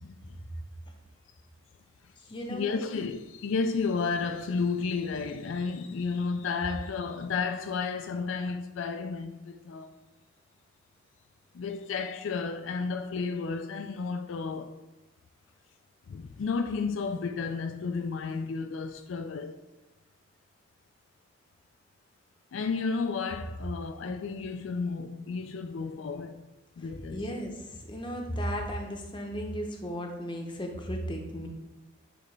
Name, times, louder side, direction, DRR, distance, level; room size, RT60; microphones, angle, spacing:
voice 1, 0.0-0.4 2.5-9.9 11.5-14.8 16.1-19.6 22.5-26.5 26.8-27.2, left 4 dB, 75° left, 0.4 m, -32 dB
voice 2, 2.2-2.8 24.0-24.4 27.1-31.5, equal, 25° left, 0.7 m, -35 dB
9.8 x 3.3 x 3.2 m
head